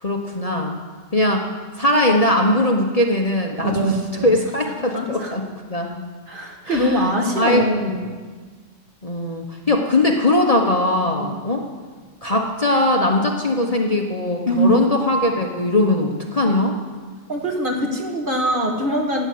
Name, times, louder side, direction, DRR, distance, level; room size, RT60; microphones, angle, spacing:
voice 1, 0.0-0.8 1.1-1.4 1.8-4.0 4.2-5.4 5.7-6.0 6.6-7.1 7.4-8.0 9.0-11.7 12.2-16.8, left 1 dB, 30° left, 1 dB, 1.1 m, -20 dB
voice 2, 3.6-4.3 4.9-5.3 6.3-8.2 11.2-11.4 14.5-14.8 17.3-19.3, equal, 40° right, 0 dB, 2.0 m, -22 dB
13.0 x 7.9 x 9.5 m, 1.4 s
omnidirectional pair, 1.3 m